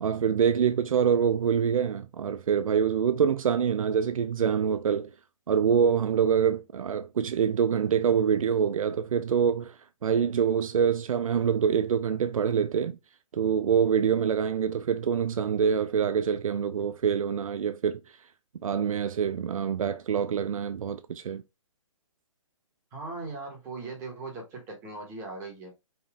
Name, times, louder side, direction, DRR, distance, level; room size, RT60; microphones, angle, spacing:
voice 1, 0.0-5.1 5.5-13.0 13.3-18.2 18.6-21.4, right 7 dB, 80° right, 0.5 m, -25 dB
voice 2, 22.9-25.7, right 3 dB, 15° right, 1.4 m, -39 dB
5.6 x 2.6 x 3.6 m
hypercardioid pair, 165°, 17 cm